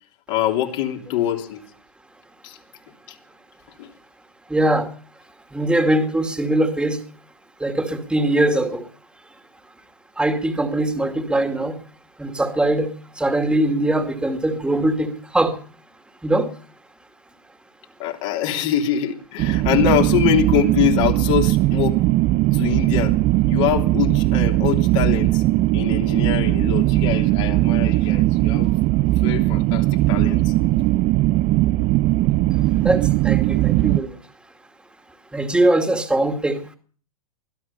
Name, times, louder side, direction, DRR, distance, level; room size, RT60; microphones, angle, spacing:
voice 1, 0.3-1.6 2.4-2.6 3.8-3.9 18.0-22.0 22.5-23.2 23.5-25.4 25.7-28.7 29.0-30.5, left 10 dB, 55° left, 3.2 m, -24 dB
voice 2, 4.5-4.9 5.5-7.0 7.6-8.9 10.2-11.8 12.2-15.6 16.2-16.5 32.8-34.2 35.3-36.8, right 1 dB, 5° right, 2.3 m, -21 dB
sound 1, 19.4-34.0, right 17 dB, 35° right, 0.7 m, -19 dB
21.5 x 11.5 x 5.6 m
hypercardioid pair, 105°, 19 cm